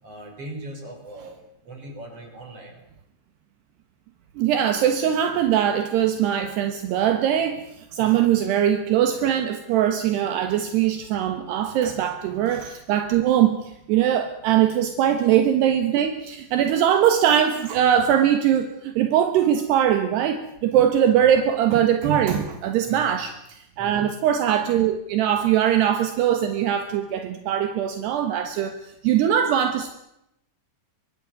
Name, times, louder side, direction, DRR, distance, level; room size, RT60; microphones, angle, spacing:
voice 1, 0.0-1.4 1.6-2.8 8.0-8.2 14.7-14.8 21.1-21.3 22.9-23.2 23.8-24.2 25.5-25.6, right 1 dB, 35° right, 4 dB, 6.7 m, -40 dB
voice 2, 4.4-23.3 23.8-29.9, right 10 dB, 75° right, 7 dB, 3.4 m, -21 dB
24.5 x 19.5 x 9.5 m, 0.83 s
omnidirectional pair, 4.9 m